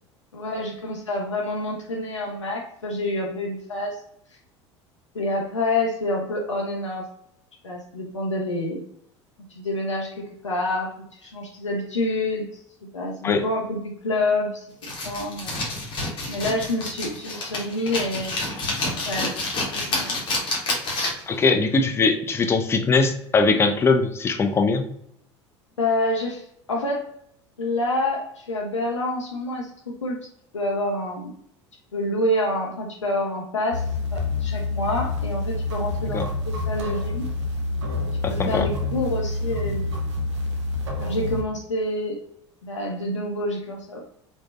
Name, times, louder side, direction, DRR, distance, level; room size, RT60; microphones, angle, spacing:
voice 1, 0.3-4.0 5.1-7.0 7.6-8.8 9.5-10.2 10.4-10.9 11.2-12.6 12.9-15.7 16.3-18.3 19.0-19.3 19.7-20.2 25.8-26.4 26.7-27.0 27.6-29.7 30.0-30.2 30.5-31.3 31.9-33.8 34.1-37.3 38.3-39.8 41.0-42.2 42.6-44.1, left 1 dB, 85° left, -1 dB, 0.4 m, -27 dB
sound 1, 14.8-21.3, left 2 dB, 35° left, 0.8 m, -28 dB
voice 2, 21.3-24.9 36.1-36.3 38.2-38.7, left 4 dB, 15° left, 6 dB, 0.3 m, -21 dB
sound 2, 33.7-41.4, left 2 dB, 70° right, 0.5 m, -27 dB
3.2 x 2.0 x 2.2 m, 0.69 s
figure-of-eight pair, 70°, 15 cm